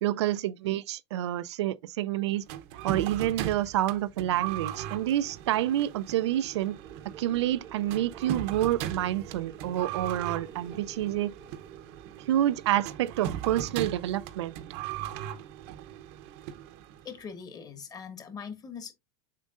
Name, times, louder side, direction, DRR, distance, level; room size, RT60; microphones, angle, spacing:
voice 1, 0.0-2.4 2.8-6.8 7.2-11.3 12.3-14.5, right 13 dB, 85° right, 0.5 m, -28 dB
sound 1, 2.5-17.2, right 11 dB, 60° right, 0.8 m, -39 dB
sound 2, 6.8-12.6, right 7 dB, 25° right, 0.9 m, -50 dB
voice 2, 17.0-18.9, left 6 dB, 25° left, 1.5 m, -41 dB
7.4 x 5.2 x 2.5 m
supercardioid pair, 125°, 14 cm